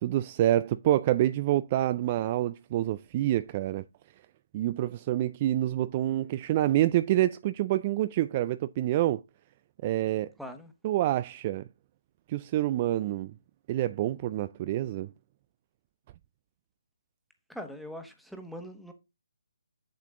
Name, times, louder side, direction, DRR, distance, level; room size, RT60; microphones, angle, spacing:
voice 1, 0.0-3.8 4.5-9.2 9.8-10.3 10.8-11.7 12.3-13.3 13.7-15.1, right 13 dB, 30° right, 0.3 m, -27 dB
voice 2, 10.4-10.7 17.5-18.9, equal, ahead, 1.2 m, -42 dB
7.6 x 7.4 x 3.6 m
figure-of-eight pair, 150°, 0 cm